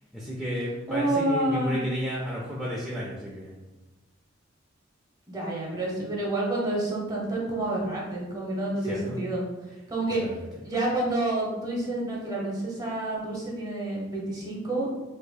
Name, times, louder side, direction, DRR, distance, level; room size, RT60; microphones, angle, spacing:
voice 1, 0.1-3.5 8.8-9.2 10.2-10.4, equal, ahead, -7 dB, 0.4 m, -32 dB
voice 2, 0.9-1.7 5.3-9.5 9.9-10.2 10.6-14.9, right 1 dB, 20° right, -3 dB, 0.8 m, -29 dB
4.3 x 2.8 x 2.2 m, 1.1 s
head